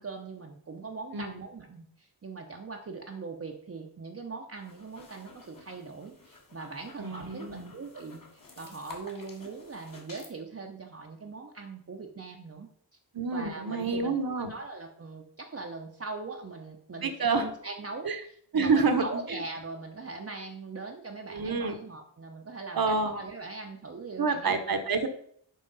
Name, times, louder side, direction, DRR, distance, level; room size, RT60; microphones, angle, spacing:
voice 1, 0.0-12.7 13.3-24.6, right 3 dB, 35° right, 2 dB, 0.7 m, -41 dB
sound 1, 4.5-10.3, left 3 dB, 50° left, 1.6 m, -51 dB
voice 2, 7.0-7.7 13.1-14.5 17.0-17.4 18.0-18.2 18.5-19.4 21.3-21.8 22.7-23.2 24.2-25.1, right 4 dB, 55° right, 8 dB, 1.0 m, -28 dB
7.4 x 5.1 x 4.0 m, 0.64 s
wide cardioid pair, 110°, 43 cm